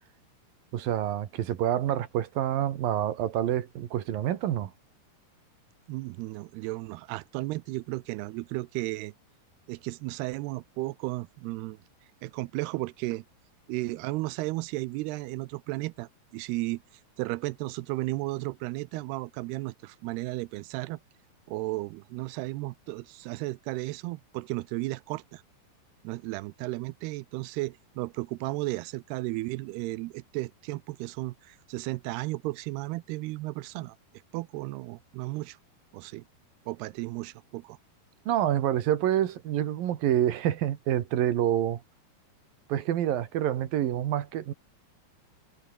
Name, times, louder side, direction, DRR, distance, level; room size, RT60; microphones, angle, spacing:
voice 1, 0.7-4.7 38.3-41.8 42.7-44.5, right 11 dB, 65° right, 3.1 m, -27 dB
voice 2, 5.9-9.1 9.7-11.8 12.2-13.2 13.7-16.8 17.2-21.0 21.5-25.4 26.0-34.0 34.3-35.6 35.9-36.2 36.7-37.8, right 20 dB, 90° right, 2.7 m, -34 dB
omnidirectional pair, 4.6 m